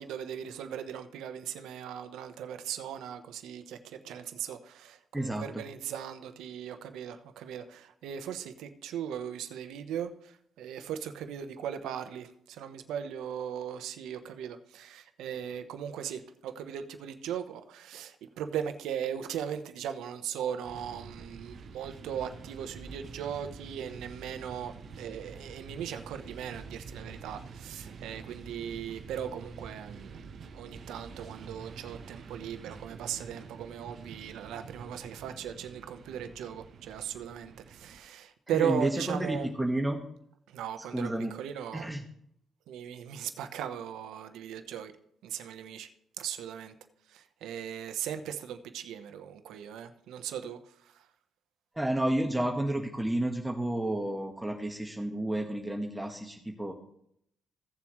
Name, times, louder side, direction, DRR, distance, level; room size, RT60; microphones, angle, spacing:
voice 1, 0.0-30.2 30.5-39.5 40.5-41.9 42.7-44.9 45.2-45.9 46.2-46.7 47.1-50.6, right 9 dB, 85° right, 9 dB, 0.9 m, -38 dB
voice 2, 5.1-5.6 38.5-40.0 40.9-41.3 41.7-42.0 51.7-56.7, right 1 dB, 10° right, 1 dB, 1.3 m, -31 dB
sound 1, 20.6-38.0, right 5 dB, 60° right, 0.9 m, -47 dB
16.0 x 7.3 x 3.1 m, 0.71 s
cardioid pair, 90°, 0 cm